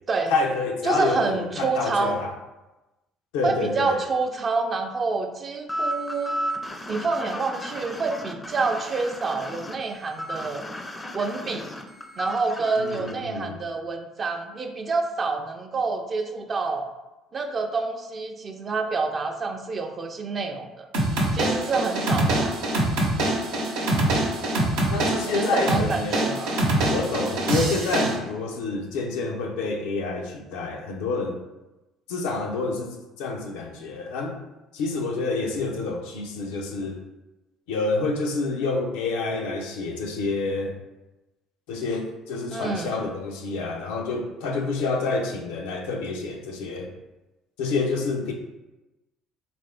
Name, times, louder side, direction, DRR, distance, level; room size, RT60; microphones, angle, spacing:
voice 1, 0.3-2.3 3.3-4.0 12.8-13.6 24.9-26.2 26.9-31.4 32.1-34.4 34.7-37.0 37.7-40.7 41.7-46.9 47.6-48.3, left 3 dB, 80° left, 2 dB, 0.5 m, -28 dB
voice 2, 0.8-2.2 3.4-6.4 6.9-10.6 11.1-11.7 12.2-16.9 17.3-20.9 21.3-22.6 25.2-26.6 42.5-42.9, right 4 dB, 40° right, 4 dB, 0.5 m, -27 dB
sound 1, 5.7-13.1, equal, 20° left, 0.5 m, -34 dB
sound 2, 20.9-28.1, right 1 dB, 80° right, 0.8 m, -24 dB
3.5 x 2.5 x 3.3 m, 1.0 s
hypercardioid pair, 65°, 0 cm